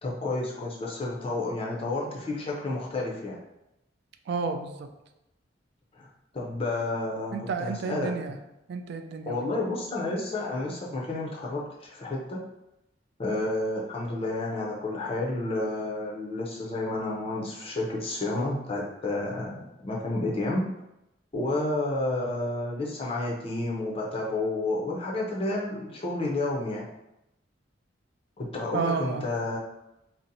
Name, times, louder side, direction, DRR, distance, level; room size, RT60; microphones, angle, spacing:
voice 1, 0.0-3.4 5.9-8.1 9.3-12.4 13.2-20.6 21.3-26.9 28.4-29.6, left 2 dB, 30° left, -3 dB, 0.5 m, -30 dB
voice 2, 4.3-4.9 7.3-8.4 8.7-9.6 28.7-29.3, right 5 dB, 60° right, 7 dB, 0.3 m, -31 dB
2.6 x 2.0 x 3.8 m, 0.89 s
head